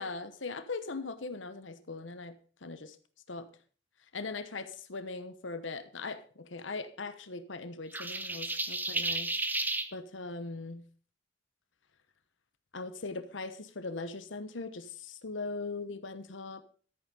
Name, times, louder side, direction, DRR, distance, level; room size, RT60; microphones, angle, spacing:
voice 1, 0.0-2.4 2.6-3.0 3.3-3.5 4.1-9.3 9.9-10.8 12.7-16.6, left 3 dB, 85° left, 12 dB, 1.1 m, -40 dB
sound 1, 7.9-9.9, right 2 dB, 10° right, 0.9 m, -32 dB
13.5 x 9.0 x 5.3 m, 0.41 s
head